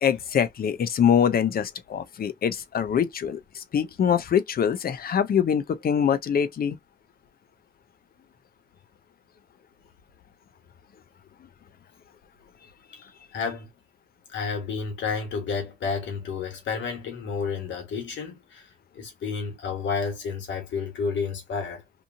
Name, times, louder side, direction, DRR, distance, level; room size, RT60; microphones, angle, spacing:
voice 1, 0.0-6.8, left 8 dB, 50° left, 0.6 m, -24 dB
voice 2, 13.3-13.7 14.3-18.7 18.9-21.8, left 5 dB, 75° left, 1.3 m, -30 dB
2.8 x 2.6 x 2.5 m
supercardioid pair, 60°, 19 cm